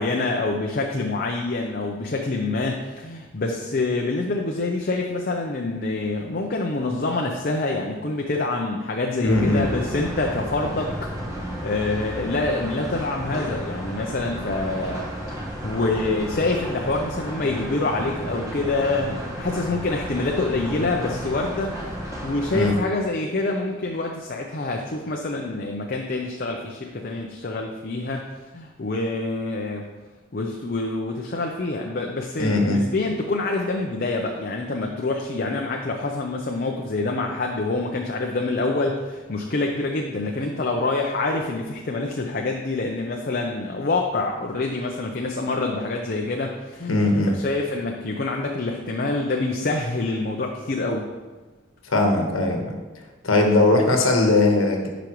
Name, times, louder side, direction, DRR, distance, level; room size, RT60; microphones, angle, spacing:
voice 1, 0.0-11.1 11.6-15.4 15.6-21.8 22.2-28.2 28.5-29.9 30.3-51.1, left 2 dB, 45° left, 1 dB, 0.6 m, -26 dB
voice 2, 9.2-9.6 22.5-22.7 32.4-32.8 46.9-47.3 51.9-52.8 53.2-54.9, left 2 dB, 90° left, 2 dB, 1.2 m, -19 dB
sound 1, 9.3-22.8, equal, 15° right, 1.4 m, -33 dB
10.5 x 5.1 x 3.1 m, 1.3 s
head